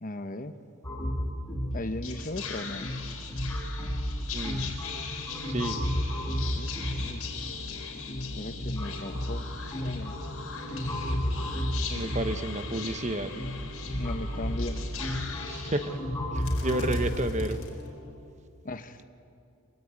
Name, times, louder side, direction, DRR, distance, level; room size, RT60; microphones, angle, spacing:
voice 1, 0.0-0.6 1.7-2.9 6.5-7.3 8.4-9.5 9.8-10.2 11.9-12.1 13.9-14.9 18.6-19.0, left 2 dB, 40° left, 9 dB, 1.1 m, -37 dB
sound 1, 0.8-17.1, equal, 15° left, 6.2 m, -33 dB
Whispering, 1.7-18.3, left 4 dB, 70° left, 4.5 m, -40 dB
voice 2, 4.3-4.8 5.5-5.8 11.9-13.3 15.4-16.0 16.3-17.6, right 1 dB, 30° right, 10 dB, 1.0 m, -31 dB
26.0 x 23.0 x 8.8 m, 2.5 s
head